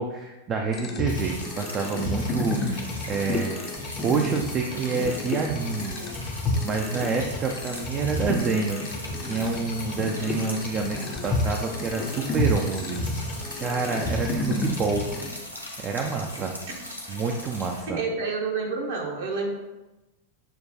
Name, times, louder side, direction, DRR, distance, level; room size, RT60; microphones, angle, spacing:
voice 1, 0.0-3.6 4.0-6.0 6.3-6.4 6.6-8.8 9.3-11.0 11.2-13.0 13.6-15.0 15.8-16.5 17.1-18.0, right 5 dB, 30° right, 2 dB, 0.4 m, -27 dB
sound 1, 0.7-15.3, left 2 dB, 25° left, 0.5 m, -31 dB
sound 2, 1.1-17.8, left 1 dB, 90° left, 0.6 m, -40 dB
voice 2, 17.9-19.5, right 4 dB, 60° right, -1 dB, 0.9 m, -29 dB
6.4 x 2.2 x 2.7 m, 1.1 s
figure-of-eight pair, 90°, 0 cm